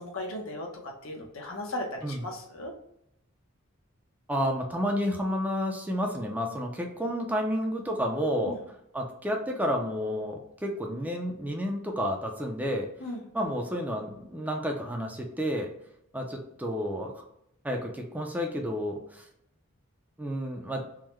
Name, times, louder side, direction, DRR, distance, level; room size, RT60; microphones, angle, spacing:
voice 1, 0.0-2.7 8.4-8.6 13.0-13.3, left 1 dB, 80° left, 0 dB, 0.9 m, -37 dB
voice 2, 4.3-8.6 8.9-12.9 13.3-15.7 16.1-17.2 17.6-19.3 20.2-20.8, equal, 10° right, 1 dB, 0.4 m, -30 dB
3.6 x 2.1 x 3.0 m, 0.78 s
head